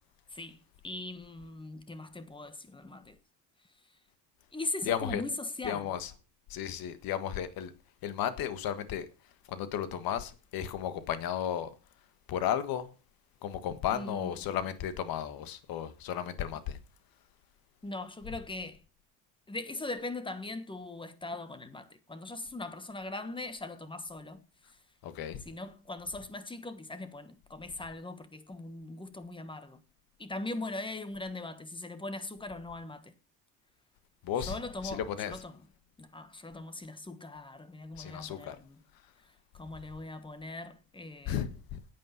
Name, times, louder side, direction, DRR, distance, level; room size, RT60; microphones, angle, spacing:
voice 1, 0.8-3.2 4.5-5.9 13.9-14.4 17.8-18.8 19.5-24.4 25.4-29.8 30.2-33.1 34.5-35.6 36.0-38.8 39.5-41.4, left 2 dB, 15° left, 1.3 m, -40 dB
voice 2, 4.8-5.2 5.6-6.1 6.5-7.7 8.0-9.1 9.5-11.7 12.3-12.9 13.4-16.8 25.0-25.4 34.2-34.5 34.8-35.3 38.0-38.6 41.3-41.8, left 9 dB, 70° left, 1.5 m, -34 dB
9.7 x 8.7 x 5.8 m
cardioid pair, 115°, 37 cm